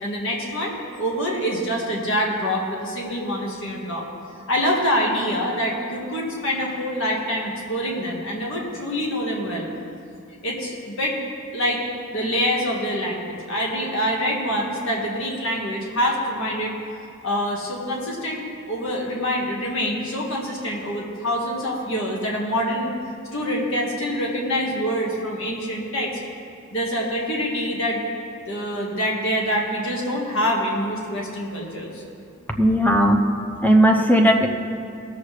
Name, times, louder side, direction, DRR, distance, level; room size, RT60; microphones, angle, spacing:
voice 1, 0.0-4.0 4.5-9.7 10.4-11.2 11.5-11.8 12.1-16.7 17.2-22.9 23.3-26.2 26.7-28.0 28.5-32.0, equal, 60° left, -2 dB, 1.8 m, -25 dB
voice 2, 32.6-33.2 33.6-34.5, equal, 10° left, 3 dB, 0.7 m, -16 dB
18.0 x 7.3 x 3.3 m, 2.6 s
head